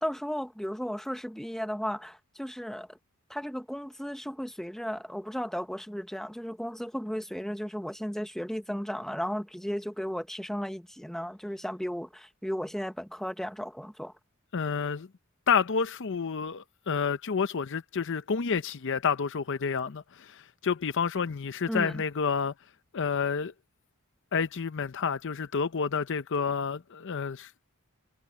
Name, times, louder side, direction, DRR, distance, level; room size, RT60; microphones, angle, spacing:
voice 1, 0.0-3.0 3.3-14.1 21.7-22.0, equal, ahead, 1.1 m, -35 dB
voice 2, 14.5-15.1 15.5-22.5 22.9-23.5 24.3-27.5, left 6 dB, 60° left, 0.6 m, -29 dB
head